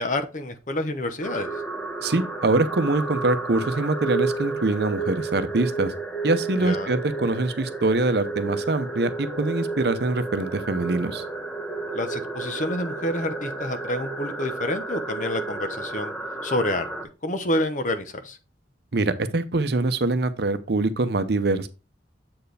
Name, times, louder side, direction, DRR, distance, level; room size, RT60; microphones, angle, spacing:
voice 1, 0.0-1.5 6.6-7.0 11.9-16.1 16.4-16.8 17.2-18.4, left 1 dB, 45° left, 0.9 m, -28 dB
sound 1, 1.2-17.0, right 3 dB, 5° left, 0.9 m, -32 dB
voice 2, 2.0-5.9 6.2-11.2 18.9-21.7, right 2 dB, 60° right, 0.7 m, -24 dB
7.7 x 4.6 x 3.3 m
head